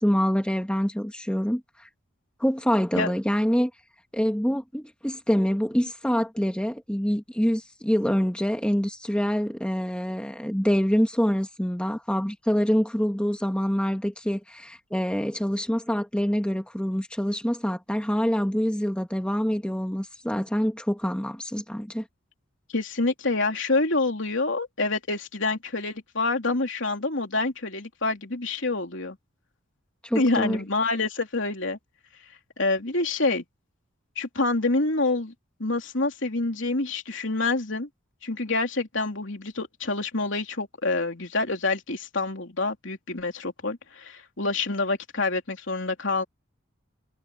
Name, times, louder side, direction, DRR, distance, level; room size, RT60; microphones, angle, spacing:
voice 1, 0.0-1.9 2.4-3.7 4.1-22.0 30.0-30.6, equal, 5° left, 1.5 m, -26 dB
voice 2, 22.7-29.2 30.1-31.8 32.6-33.4 34.2-35.3 35.6-37.9 38.2-46.2, left 3 dB, 65° left, 3.4 m, -27 dB
head